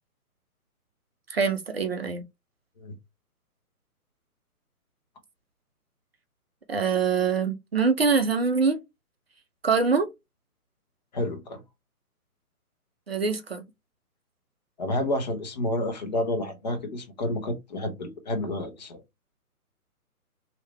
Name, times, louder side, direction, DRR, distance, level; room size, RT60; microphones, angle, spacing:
voice 1, 1.3-2.2 6.7-8.8 9.6-10.1 13.1-13.6, right 5 dB, 45° right, 0.6 m, -24 dB
voice 2, 11.1-11.6 14.8-19.0, left 1 dB, 30° left, 0.9 m, -30 dB
3.1 x 2.9 x 3.2 m
figure-of-eight pair, 135°, 45 cm